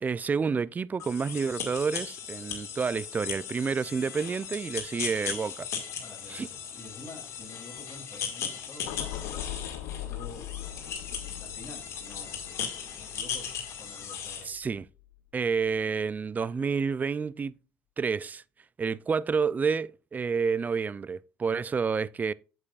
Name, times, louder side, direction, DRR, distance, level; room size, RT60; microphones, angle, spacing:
voice 1, 0.0-5.7 6.3-6.5 14.5-14.9 15.3-17.5 18.0-18.4 18.8-22.3, right 5 dB, 30° right, 0.4 m, -29 dB
sound 1, 1.0-14.4, left 7 dB, 60° left, 2.1 m, -37 dB
voice 2, 6.0-9.5 9.9-10.5 10.8-14.6, left 2 dB, 45° left, 3.3 m, -49 dB
sound 2, 8.9-15.1 15.5-15.8, left 12 dB, 85° left, 0.7 m, -41 dB
8.4 x 7.3 x 2.5 m
supercardioid pair, 70°, 5 cm